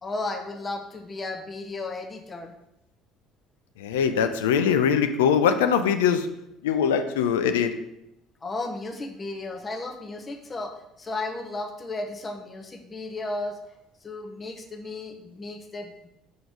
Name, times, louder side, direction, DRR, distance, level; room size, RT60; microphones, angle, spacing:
voice 1, 0.0-2.5 8.4-13.6 14.0-16.1, left 2 dB, 30° left, 4 dB, 0.9 m, -34 dB
voice 2, 3.8-6.3 6.6-7.7, left 7 dB, 85° left, 8 dB, 0.4 m, -22 dB
5.3 x 3.9 x 4.6 m, 0.82 s
hypercardioid pair, 65°, 0 cm